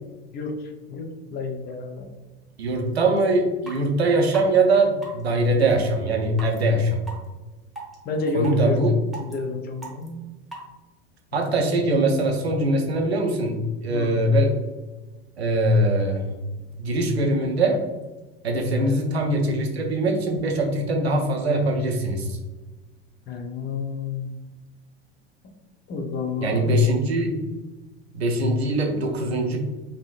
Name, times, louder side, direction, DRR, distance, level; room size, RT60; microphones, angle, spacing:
voice 1, 0.9-2.1 8.0-8.8 9.2-10.2 11.3-11.4 13.9-14.1 18.7-18.9 23.3-24.3 25.9-26.7, left 3 dB, 30° left, 4 dB, 0.6 m, -29 dB
voice 2, 2.6-7.0 8.3-8.9 11.3-14.6 15.4-16.3 16.8-17.8 18.4-22.4 26.4-27.4 28.1-29.6, right 1 dB, 90° right, 3 dB, 0.6 m, -22 dB
sound 1, 3.2-3.3 3.7-3.8 4.3-4.4 5.0-5.2 5.7-5.8 6.4-6.6 7.1-7.2 7.8-7.9 8.4-8.6 9.1-9.3 9.8-10.1 10.5-10.6, right 2 dB, ahead, 1.1 m, -37 dB
3.5 x 2.8 x 2.4 m, 1.2 s
hypercardioid pair, 85°, 31 cm